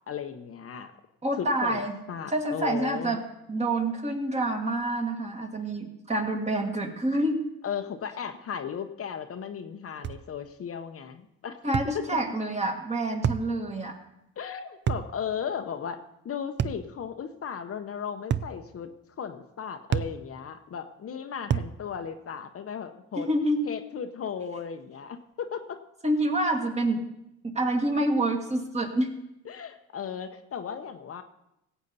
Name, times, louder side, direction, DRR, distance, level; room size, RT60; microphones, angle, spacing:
voice 1, 0.1-0.9 1.4-1.8 2.1-3.2 7.6-11.6 11.9-12.0 14.4-18.9 19.2-23.3 23.6-25.8 29.5-31.2, left 7 dB, 50° left, 7 dB, 0.8 m, -36 dB
voice 2, 1.2-2.0 2.3-3.2 3.5-7.4 11.6-14.0 23.2-23.6 26.0-27.0 27.4-29.1, right 1 dB, 20° right, 3 dB, 1.7 m, -27 dB
sound 1, 10.0-10.3 11.7-12.0 13.2-13.5 14.9-15.1 16.6-16.9 18.3-18.6 19.9-20.2 21.5-21.8, right 8 dB, 40° right, 0.4 m, -27 dB
17.0 x 8.2 x 4.1 m, 0.85 s
cardioid pair, 90°, 30 cm